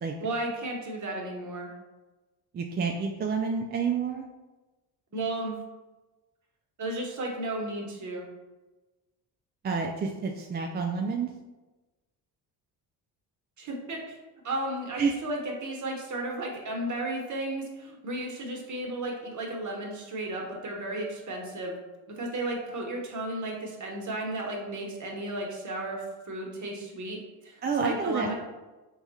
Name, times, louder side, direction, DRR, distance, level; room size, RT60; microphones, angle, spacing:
voice 1, 0.2-1.7 5.1-5.5 6.8-8.3 13.6-21.8 22.2-27.2 27.4-28.3, right 1 dB, 40° right, -1 dB, 1.2 m, -34 dB
voice 2, 2.5-4.3 9.6-11.3 15.0-15.1 27.6-28.3, right 5 dB, 25° right, 2 dB, 0.3 m, -29 dB
3.4 x 2.4 x 4.0 m, 1.1 s
supercardioid pair, 60°, 45 cm